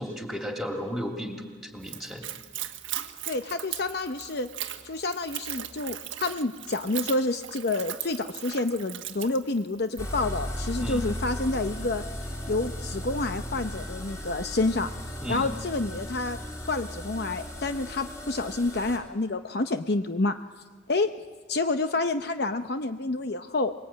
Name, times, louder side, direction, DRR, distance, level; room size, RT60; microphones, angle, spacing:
voice 1, 0.0-2.2 10.7-11.1 15.2-15.5, equal, ahead, 2 dB, 2.7 m, -34 dB
Splash splatter / Trickle dribble, 1.8-10.1, right 12 dB, 80° right, 1.4 m, -38 dB
voice 2, 3.3-4.5 4.8-12.0 12.5-14.9 15.3-16.4 16.7-20.4 20.9-21.1 21.5-23.7, left 2 dB, 55° left, 8 dB, 0.8 m, -28 dB
sound 1, 10.0-19.0, equal, 15° left, 2.9 m, -36 dB
24.0 x 21.5 x 9.0 m, 1.4 s
head